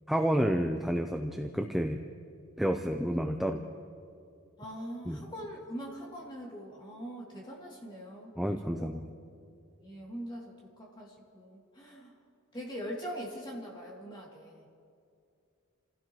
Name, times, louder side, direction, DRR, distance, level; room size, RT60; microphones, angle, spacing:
voice 1, 0.1-2.0 2.6-3.6 5.1-5.2 8.4-9.0, equal, ahead, 4 dB, 0.5 m, -30 dB
voice 2, 4.6-8.3 8.6-8.9 9.8-12.1 12.5-14.7, equal, 20° left, -3 dB, 2.9 m, -42 dB
29.0 x 15.5 x 3.2 m, 2.5 s
head